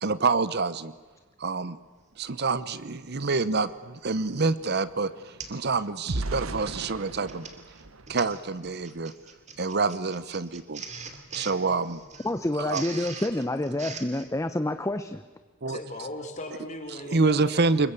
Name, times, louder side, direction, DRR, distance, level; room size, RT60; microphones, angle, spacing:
voice 1, 0.0-0.9 1.4-1.8 2.2-7.5 8.1-9.1 9.6-10.8 11.3-12.0 12.6-12.8 15.6-15.8 17.1-17.9, right 4 dB, 50° right, 15 dB, 0.9 m, -27 dB
sound 1, 3.1-3.2 3.5-9.0 9.5-9.7 10.1-10.3, right 2 dB, 70° right, 1.2 m, -39 dB
Printer, 3.4-3.7 4.3-4.5 4.8-4.9 5.4-5.7 6.0-6.3 7.0-14.3, right 5 dB, 35° right, 2.6 m, -42 dB
voice 2, 12.2-15.2, left 1 dB, 15° left, 10 dB, 0.8 m, -28 dB
voice 3, 15.7-17.9, left 1 dB, 35° left, 5 dB, 3.9 m, -38 dB
26.0 x 22.5 x 8.4 m, 1.4 s
head